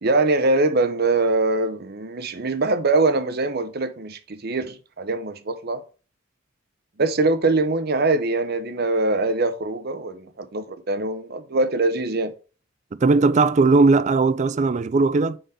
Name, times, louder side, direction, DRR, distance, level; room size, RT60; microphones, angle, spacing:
voice 1, 0.0-5.8 7.0-12.3, right 2 dB, 55° right, 0.8 m, -23 dB
voice 2, 13.0-15.4, right 3 dB, 35° right, 0.4 m, -18 dB
5.0 x 4.0 x 5.5 m
head